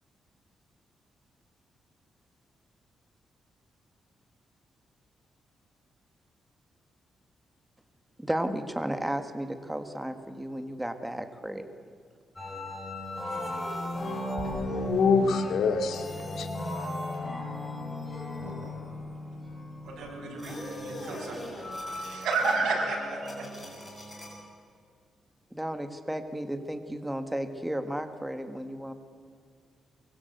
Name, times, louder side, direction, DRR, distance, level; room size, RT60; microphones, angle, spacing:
voice 1, 8.2-11.6 25.5-28.9, right 1 dB, 5° right, 8 dB, 1.7 m, -33 dB
sound 1, 12.4-24.4, left 1 dB, 20° left, 6.9 m, -36 dB
voice 2, 14.4-16.5, left 5 dB, 75° left, 7 dB, 2.3 m, -26 dB
voice 3, 19.8-21.6 21.9-23.4, right 3 dB, 85° right, 0 dB, 6.9 m, -31 dB
24.0 x 23.5 x 8.2 m, 2.2 s
cardioid pair, 125°, 0 cm